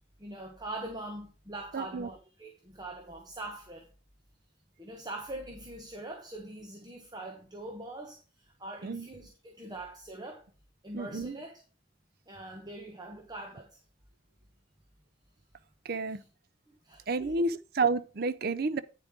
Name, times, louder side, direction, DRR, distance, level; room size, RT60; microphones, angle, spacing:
voice 1, 0.2-3.9 4.8-10.4 10.8-11.6 12.3-13.8 16.1-16.3 16.7-17.3, right 1 dB, 20° right, 1.2 m, -43 dB
voice 2, 1.7-2.1 8.8-9.1 10.9-11.4 15.9-16.2 17.1-18.8, right 3 dB, 50° right, 0.5 m, -30 dB
9.4 x 7.2 x 3.7 m
head